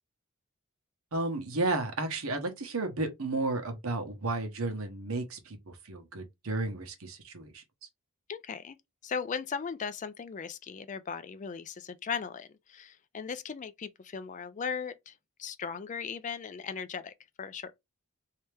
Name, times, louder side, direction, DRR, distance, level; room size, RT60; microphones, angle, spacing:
voice 1, 1.1-7.6, right 2 dB, 75° right, 1.0 m, -33 dB
voice 2, 8.3-8.8 9.0-17.7, left 6 dB, 35° left, 0.4 m, -38 dB
3.3 x 2.8 x 3.3 m
head